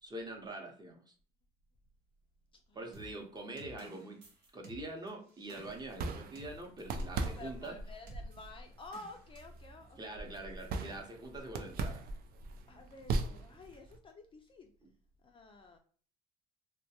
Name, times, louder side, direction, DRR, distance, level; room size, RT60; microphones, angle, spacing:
voice 1, 0.0-1.1 2.7-4.2 4.5-7.8 10.0-12.0, right 2 dB, 25° right, 1 dB, 0.7 m, -44 dB
voice 2, 2.7-3.3 7.4-10.2 12.7-14.7 15.2-15.8, left 3 dB, 30° left, 4 dB, 0.3 m, -52 dB
sound 1, 2.9-7.7 8.1-8.3 8.9-9.6, equal, 80° right, 0.9 m, -54 dB
sound 2, 5.5-14.0, right 3 dB, 60° right, 0.4 m, -40 dB
2.3 x 2.1 x 2.8 m, 0.43 s
cardioid pair, 110°, 17 cm